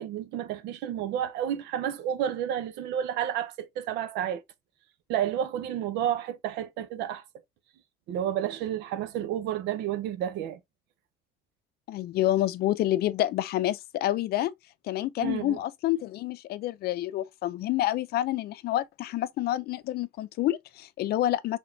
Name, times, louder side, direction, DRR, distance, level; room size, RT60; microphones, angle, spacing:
voice 1, 0.0-4.4 5.1-7.2 8.1-10.6 15.2-15.6, right 10 dB, 85° right, 0.8 m, -31 dB
voice 2, 11.9-14.5 14.9-21.6, left 14 dB, 70° left, 0.5 m, -28 dB
5.0 x 3.5 x 2.7 m
cardioid pair, 110°, 17 cm